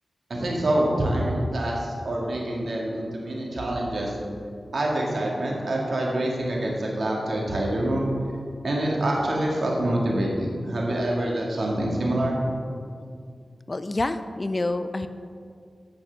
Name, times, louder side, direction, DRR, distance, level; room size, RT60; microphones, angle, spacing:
voice 1, 0.3-4.1 4.7-8.1 8.6-12.4, right 1 dB, 65° right, -2 dB, 2.0 m, -26 dB
voice 2, 13.7-15.1, left 2 dB, 35° left, 11 dB, 0.4 m, -27 dB
8.5 x 6.1 x 5.8 m, 2.2 s
wide cardioid pair, 75°, 0 cm